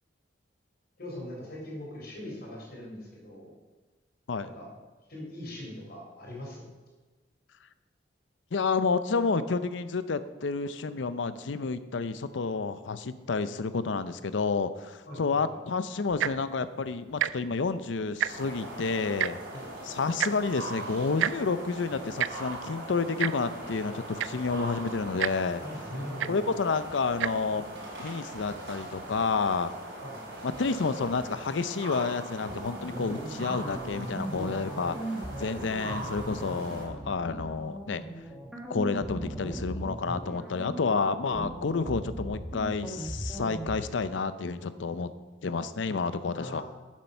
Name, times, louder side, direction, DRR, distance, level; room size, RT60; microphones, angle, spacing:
voice 1, 1.0-3.5 4.4-4.7 5.1-6.6 15.1-15.4 19.5-19.6 25.6-26.4 30.0-30.2 46.3-46.6, left 1 dB, 55° left, -3 dB, 3.8 m, -41 dB
voice 2, 8.5-19.4 19.9-25.6 26.3-27.6 28.0-29.7 30.4-38.0 38.7-45.1 45.4-46.6, left 4 dB, 75° left, 13 dB, 0.6 m, -30 dB
Tick-tock, 16.1-16.5 17.1-17.3 17.6-17.8 18.0-18.6 19.2-19.3 20.2-20.3 21.2-21.3 22.2-22.3 23.2-23.3 23.9-24.0 24.2-24.5 25.2-25.3 26.2-26.3 27.1-27.3 28.0-28.1, right 10 dB, 90° right, 0.3 m, -28 dB
sound 1, 18.3-36.9, right 1 dB, 65° right, 3.5 m, -41 dB
sound 2, 32.5-43.8, right 1 dB, ahead, 1.3 m, -38 dB
9.5 x 7.5 x 5.7 m, 1.3 s
head